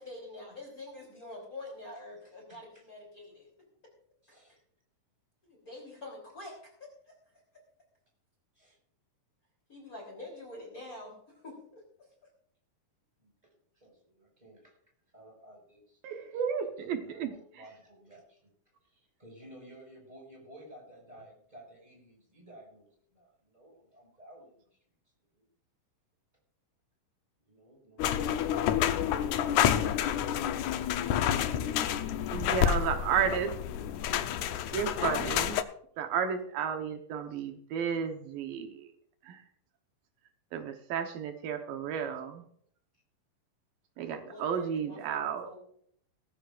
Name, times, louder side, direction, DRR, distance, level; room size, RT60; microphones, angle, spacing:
voice 1, 0.0-3.5 5.4-7.2 9.7-11.8 44.0-45.6, left 2 dB, 25° left, 1 dB, 3.5 m, -46 dB
voice 2, 2.5-2.9 4.2-4.6 8.5-8.8 13.2-13.3 13.7-14.8 15.1-16.2 16.9-18.4 18.8-24.7 25.4-25.5 27.4-28.8 31.6-33.5, right 1 dB, 10° right, -1 dB, 5.6 m, -54 dB
voice 3, 16.0-17.3 32.3-33.5 34.7-35.6 36.0-38.9 39.3-39.4 40.5-42.4 44.0-45.5, right 7 dB, 80° right, 5 dB, 2.8 m, -32 dB
sound 1, 28.0-35.6, left 10 dB, 75° left, 1.8 m, -29 dB
18.5 x 14.0 x 2.5 m, 0.64 s
omnidirectional pair, 4.0 m